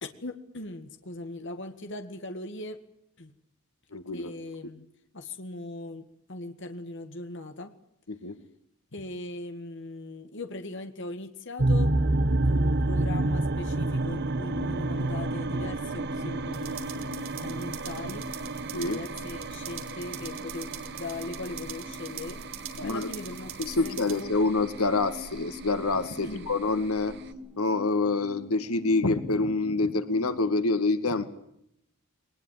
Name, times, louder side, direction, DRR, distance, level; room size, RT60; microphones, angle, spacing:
voice 1, 0.0-2.8 3.2-3.3 4.1-4.9 5.1-7.7 8.9-12.0 12.4-16.9 17.4-18.3 18.8-20.7 21.0-23.5 23.8-24.3 26.2-26.5, left 2 dB, 55° left, 7 dB, 2.0 m, -39 dB
voice 2, 3.9-4.3 8.1-8.4 18.7-19.0 22.8-23.1 23.6-27.2 27.6-31.3, left 3 dB, 85° left, 10 dB, 2.2 m, -27 dB
sound 1, 11.6-27.3, right 2 dB, 50° right, 1.3 m, -30 dB
sound 2, 13.6-30.6, left 2 dB, ahead, 3.3 m, -45 dB
sound 3, 16.5-24.2, right 11 dB, 65° right, 3.8 m, -44 dB
22.0 x 20.0 x 9.2 m, 0.75 s
head